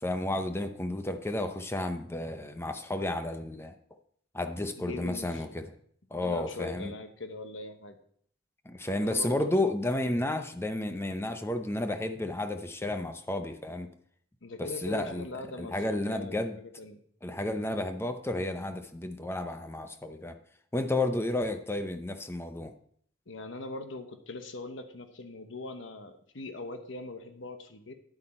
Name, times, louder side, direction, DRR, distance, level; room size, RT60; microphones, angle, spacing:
voice 1, 0.0-3.7 4.3-5.7 6.1-6.9 8.7-13.9 14.6-15.3 15.6-16.6 17.2-20.4 20.7-22.7, left 1 dB, 15° left, 8 dB, 0.7 m, -32 dB
voice 2, 4.8-5.5 6.2-8.0 9.0-9.5 14.4-17.0 23.3-27.9, left 2 dB, 75° left, 7 dB, 1.1 m, -41 dB
10.0 x 8.2 x 4.4 m, 0.62 s
head